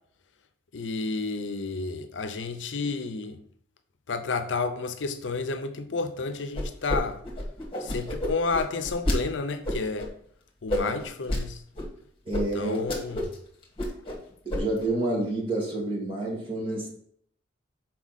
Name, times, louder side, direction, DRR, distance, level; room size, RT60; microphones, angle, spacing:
voice 1, 0.7-3.4 4.1-7.2 7.8-10.1 10.6-11.6 12.3-13.2, left 4 dB, 85° left, 0.6 m, -31 dB
sound 1, 6.5-7.0 7.2-9.2 9.6-10.1 10.7-11.4 11.8-11.9 12.3-12.4 12.7-13.4 13.6-14.2 14.5-14.9, left 1 dB, 30° left, 1.4 m, -29 dB
voice 2, 12.3-12.8 14.4-16.9, right 2 dB, 30° right, 1.9 m, -28 dB
6.1 x 4.4 x 4.1 m
head